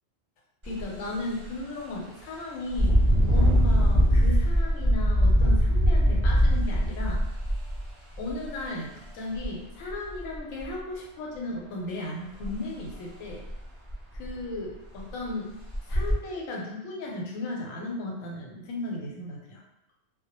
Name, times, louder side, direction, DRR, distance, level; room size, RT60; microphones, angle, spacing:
voice 1, 0.6-7.2 8.2-13.4 14.1-15.5 15.9-19.6, left 2 dB, 90° left, -1 dB, 1.0 m, -35 dB
Engine, 0.6-0.8 1.3-1.5 2.7-8.5 9.4-9.5 9.9-10.6 12.4-12.5 12.9-13.0 13.5-13.6 13.9-14.4 15.0-15.1 15.7-16.1, equal, 25° right, 0.8 m, -22 dB
2.2 x 2.0 x 2.8 m, 0.83 s
omnidirectional pair, 1.3 m